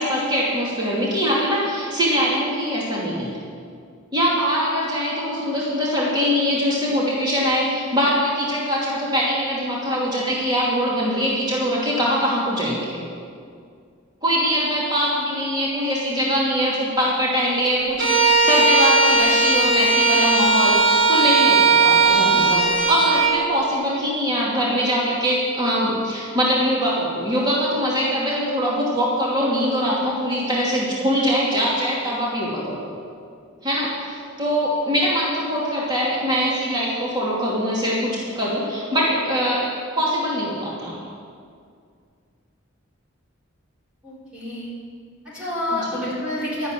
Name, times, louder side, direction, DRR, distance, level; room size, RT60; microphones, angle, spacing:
voice 1, 0.0-3.4 4.1-13.0 14.2-32.9 33.6-39.6 40.0-41.0 45.7-46.0, equal, 20° right, -6 dB, 2.6 m, -22 dB
Bowed string instrument, 18.0-23.4, right 3 dB, 75° right, 3.8 m, -17 dB
voice 2, 44.0-44.7 45.2-46.7, left 1 dB, 5° right, -10 dB, 4.4 m, -28 dB
12.5 x 10.5 x 9.1 m, 2.2 s
head